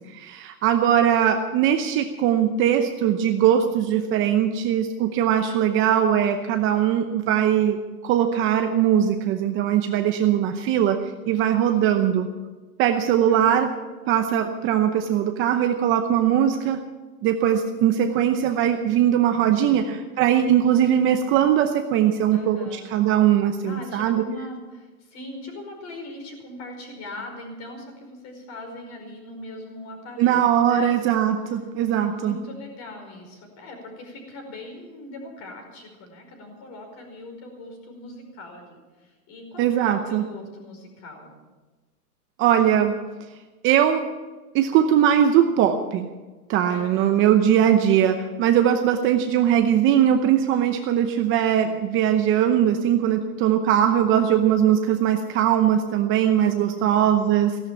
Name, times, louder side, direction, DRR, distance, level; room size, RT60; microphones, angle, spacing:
voice 1, 0.1-7.8 8.0-12.3 12.8-13.7 14.1-16.8 17.2-22.6 22.9-24.2 30.2-32.4 39.6-40.2 42.4-43.0 43.6-44.1 44.5-46.1 46.5-57.6, right 10 dB, 25° right, 6 dB, 0.8 m, -20 dB
voice 2, 11.7-12.2 13.3-13.5 19.3-19.9 22.3-22.9 23.6-30.9 32.0-41.3 46.7-47.2 56.4-57.2, left 1 dB, 35° left, 3 dB, 5.0 m, -40 dB
16.0 x 11.5 x 7.3 m, 1.3 s
hypercardioid pair, 145°, 46 cm